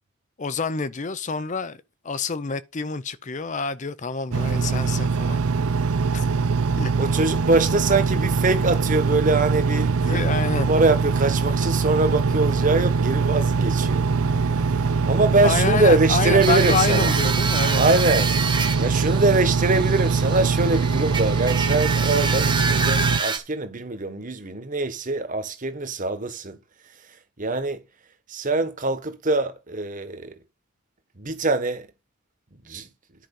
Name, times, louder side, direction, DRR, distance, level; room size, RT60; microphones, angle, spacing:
voice 1, 0.4-5.5 6.1-6.2 6.8-6.9 10.1-10.7 15.4-17.8, left 4 dB, 35° left, 0.5 m, -27 dB
Engine, 4.3-23.2, right 4 dB, 75° right, 0.6 m, -22 dB
voice 2, 7.0-14.1 14.6-17.1 17.8-18.3 18.8-26.6 27.4-27.8 28.3-30.3 31.2-31.9 32.6-32.9, right 2 dB, 35° right, 1.3 m, -23 dB
sound 1, 16.4-23.4, right 5 dB, 20° right, 1.0 m, -27 dB
10.5 x 5.0 x 5.4 m
head